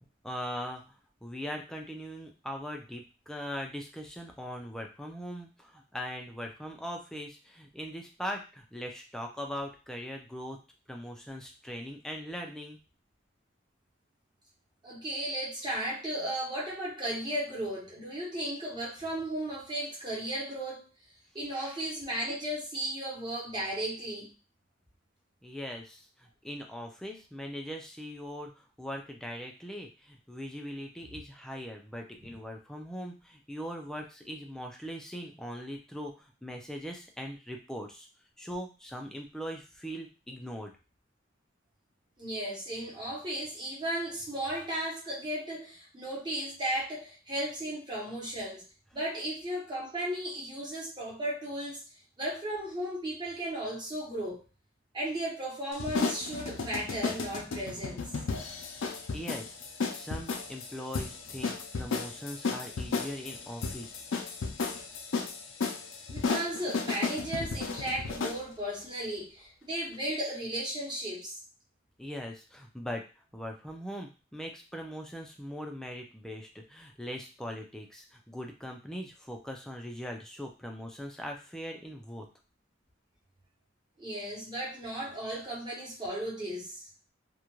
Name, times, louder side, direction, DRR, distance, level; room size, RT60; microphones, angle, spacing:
voice 1, 0.2-10.6 10.9-12.8 25.4-38.1 38.4-40.7 59.1-59.6 59.9-64.0 72.0-73.0 73.3-82.3, equal, 5° left, 2 dB, 0.4 m, -40 dB
voice 2, 14.8-20.9 21.3-24.3 32.2-32.3 42.2-48.6 48.9-51.8 52.2-54.4 54.9-58.1 66.1-71.4 84.0-86.9, right 1 dB, 25° right, -5 dB, 1.0 m, -35 dB
sound 1, 55.7-68.4, left 4 dB, 80° left, 0.5 m, -34 dB
2.4 x 2.2 x 3.0 m, 0.31 s
head